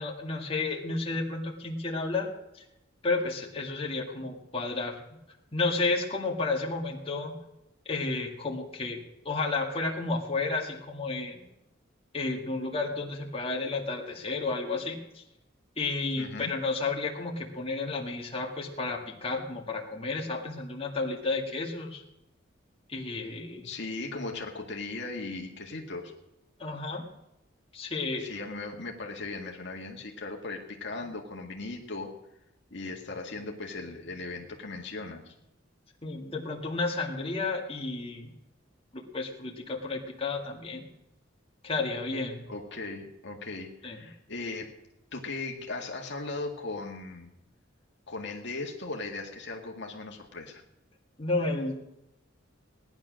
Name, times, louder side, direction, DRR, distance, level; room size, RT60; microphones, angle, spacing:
voice 1, 0.0-2.6 3.0-5.0 5.5-7.3 7.9-9.0 9.2-11.4 12.1-15.2 15.8-22.0 22.9-23.7 26.6-27.1 27.7-28.3 36.0-38.3 38.9-40.9 41.6-42.4 43.8-44.0 51.2-51.8, left 3 dB, 30° left, 0 dB, 2.2 m, -32 dB
voice 2, 16.2-16.5 23.2-23.3 23.6-26.1 28.2-32.1 32.7-35.4 42.5-44.7 45.1-47.3 48.1-50.6, left 3 dB, 60° left, 1 dB, 1.9 m, -38 dB
18.0 x 11.0 x 6.4 m, 0.89 s
head